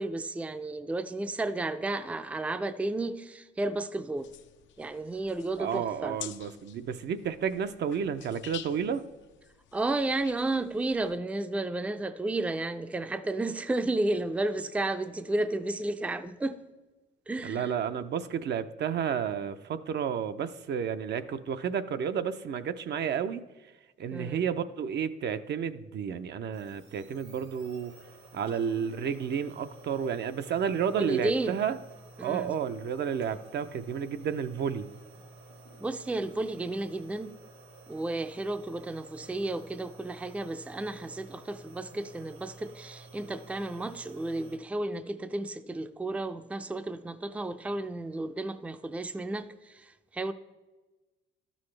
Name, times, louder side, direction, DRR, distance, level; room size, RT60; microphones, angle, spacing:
voice 1, 0.0-4.3 4.8-6.2 9.7-16.6 17.3-17.7 24.1-24.4 31.0-31.6 32.2-32.5 35.8-37.3 37.9-50.3, right 2 dB, 5° right, 0.4 m, -32 dB
sound 1, 4.2-11.2, left 10 dB, 70° left, 0.5 m, -49 dB
voice 2, 5.6-9.0 17.4-23.4 24.0-27.9 28.3-31.7 32.2-34.9, right 7 dB, 60° right, 0.5 m, -31 dB
sound 2, 26.5-44.6, right 3 dB, 80° right, 3.1 m, -52 dB
12.5 x 6.3 x 3.2 m
cardioid pair, 90°, 20 cm